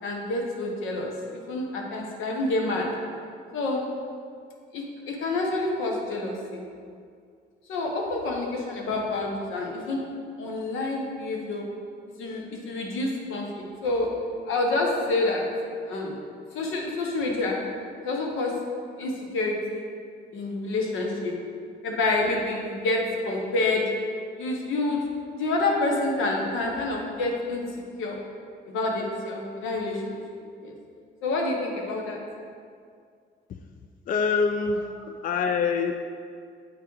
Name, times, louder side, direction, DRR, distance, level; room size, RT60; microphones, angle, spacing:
voice 1, 0.0-2.9 3.5-3.8 4.7-6.6 7.7-10.0 10.4-11.6 12.2-14.1 14.5-15.4 15.8-16.1 16.5-17.6 18.0-18.5 19.0-19.9 20.3-21.3 21.8-23.8 24.4-25.1 25.3-27.6 28.0-28.2 28.7-30.2 30.6-30.7 31.2-32.2, left 2 dB, 85° left, 0 dB, 1.1 m, -28 dB
voice 2, 34.1-36.0, left 5 dB, 45° left, 6 dB, 0.4 m, -25 dB
7.9 x 3.5 x 4.7 m, 2.2 s
cardioid pair, 90°, 20 cm